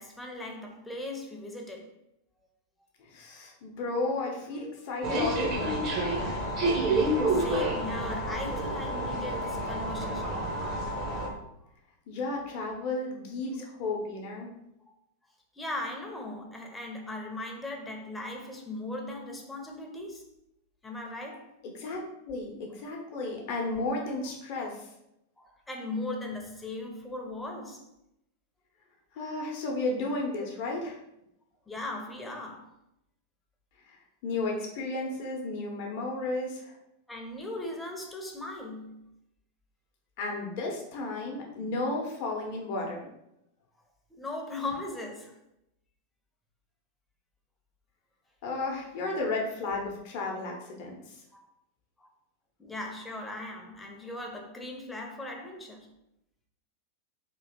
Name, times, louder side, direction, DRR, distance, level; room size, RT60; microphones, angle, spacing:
voice 1, 0.0-1.9 4.6-4.7 6.6-10.5 15.5-20.3 20.8-21.5 25.4-27.9 31.7-32.7 37.1-39.1 44.1-45.4 51.3-51.5 52.0-52.1 52.6-55.9, left 2 dB, 10° left, 0.7 m, -38 dB
voice 2, 3.0-5.7 12.1-14.5 21.6-24.9 29.1-31.0 33.9-36.7 40.2-43.0 48.4-51.2, left 2 dB, 45° left, 0.8 m, -33 dB
sound 1, 5.0-11.3, right 1 dB, 35° right, 0.8 m, -29 dB
3.0 x 2.8 x 4.1 m
figure-of-eight pair, 90°, 0 cm